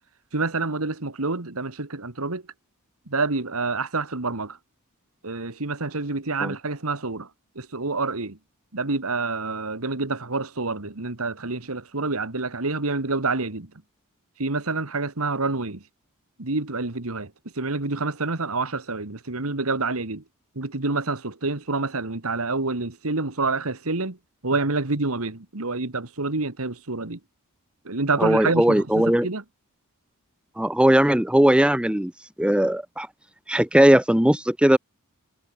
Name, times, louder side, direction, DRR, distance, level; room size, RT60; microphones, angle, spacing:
voice 1, 0.3-2.4 3.1-4.6 5.2-7.3 7.6-8.4 8.7-13.7 14.4-15.8 16.4-17.3 17.6-20.2 20.6-24.2 24.4-27.2 27.9-29.4, right 3 dB, 65° right, 1.9 m, -27 dB
voice 2, 28.2-29.3 30.6-32.1 32.4-33.1 33.5-34.8, right 1 dB, 5° right, 0.6 m, -19 dB
head